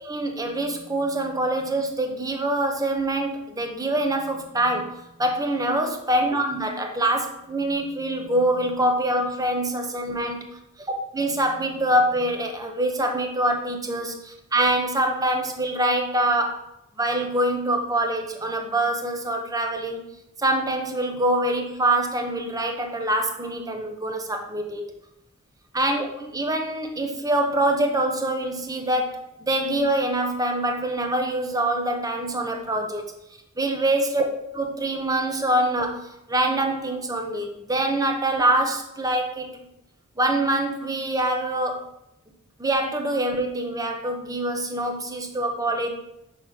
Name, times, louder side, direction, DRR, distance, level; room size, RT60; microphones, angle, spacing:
voice 1, 0.1-10.4 11.1-14.1 14.5-16.6 17.0-20.0 20.4-24.9 25.7-26.1 26.3-33.1 33.6-34.2 34.6-39.5 40.2-41.8 42.6-45.9, right 1 dB, 15° right, 4 dB, 0.9 m, -24 dB
5.6 x 4.0 x 6.0 m, 0.84 s
head